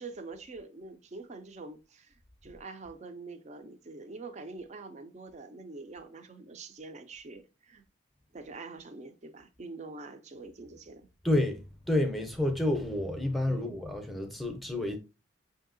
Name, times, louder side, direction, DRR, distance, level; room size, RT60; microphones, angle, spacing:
voice 1, 0.0-7.8 8.3-11.1 13.5-13.7, right 3 dB, 35° right, 0.5 m, -45 dB
voice 2, 11.2-15.0, left 1 dB, ahead, 0.6 m, -29 dB
5.6 x 2.7 x 2.5 m
head